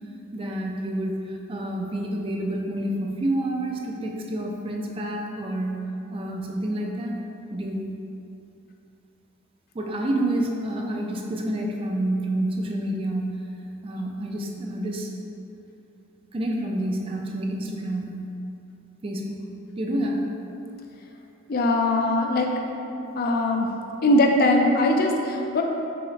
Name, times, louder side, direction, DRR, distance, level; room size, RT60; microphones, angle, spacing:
voice 1, 0.3-7.2 7.5-7.9 9.7-13.4 13.8-15.1 16.3-18.3 19.0-19.4 19.8-20.3, right 1 dB, 25° right, 1 dB, 0.4 m, -28 dB
voice 2, 21.5-22.6 23.2-23.7 24.0-25.6, left 1 dB, 45° left, 2 dB, 0.4 m, -21 dB
5.6 x 2.1 x 4.0 m, 2.7 s
head